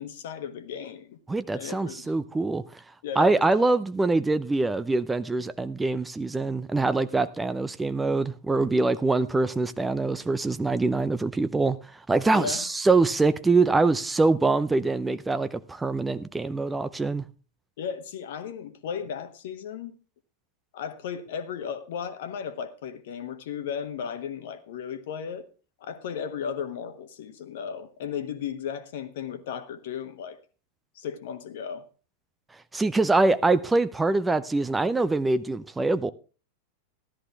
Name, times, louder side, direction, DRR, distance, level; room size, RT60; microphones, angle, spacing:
voice 1, 0.0-1.2 1.5-2.1 3.0-3.7 12.3-12.6 17.8-19.9 20.7-25.4 25.8-30.4 30.9-31.8, left 7 dB, 55° left, 1.4 m, -35 dB
voice 2, 1.3-2.6 3.2-11.8 12.1-17.2 32.7-36.1, right 3 dB, 10° right, 0.6 m, -24 dB
14.0 x 12.5 x 3.4 m
figure-of-eight pair, 90°, 0 cm